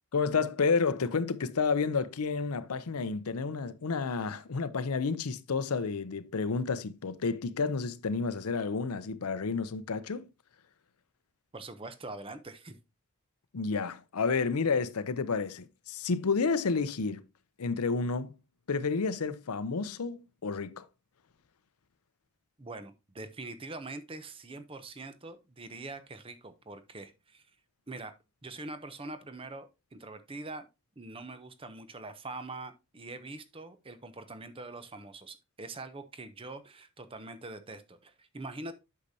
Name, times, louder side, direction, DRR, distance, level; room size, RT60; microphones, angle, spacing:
voice 1, 0.1-10.3 13.5-17.2 17.6-18.4 18.7-20.9, left 4 dB, 90° left, 0.6 m, -30 dB
voice 2, 11.5-12.8 22.6-27.4 27.9-28.1 28.4-30.7 31.0-38.7, right 2 dB, 25° right, 0.7 m, -43 dB
8.3 x 6.6 x 2.7 m
head